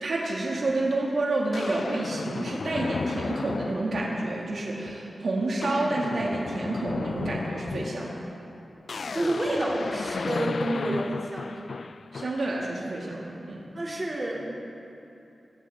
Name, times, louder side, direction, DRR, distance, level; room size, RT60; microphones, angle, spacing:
voice 1, 0.0-8.2 12.1-13.6, right 2 dB, 75° right, -3 dB, 2.4 m, -29 dB
sound 1, 0.7-0.8 1.5-4.4 4.8-5.1 5.4-12.5, left 4 dB, 65° left, 0.3 m, -34 dB
voice 2, 9.0-11.6 13.7-14.5, right 1 dB, 30° right, -4 dB, 3.1 m, -29 dB
25.5 x 13.5 x 3.8 m, 2.8 s
wide cardioid pair, 90°, 0 cm